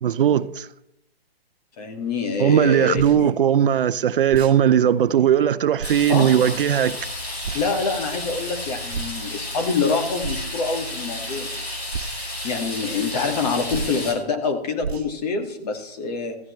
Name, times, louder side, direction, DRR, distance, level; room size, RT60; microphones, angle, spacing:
voice 1, 0.0-0.7 2.4-7.0, right 9 dB, 60° right, 0.6 m, -18 dB
voice 2, 1.8-3.3 6.1-6.3 7.5-11.5 12.4-16.4, left 4 dB, 40° left, 2.1 m, -26 dB
sound 1, 2.9-3.2 4.3-4.6 5.8-6.0 7.4-7.7 8.9-9.2 10.2-10.6 11.9-12.1 13.7-14.0 14.8-15.1, right 6 dB, 90° right, 1.0 m, -31 dB
sound 2, 5.8-14.1, left 1 dB, 80° left, 6.3 m, -32 dB
16.0 x 14.5 x 3.2 m
hypercardioid pair, 150°, 31 cm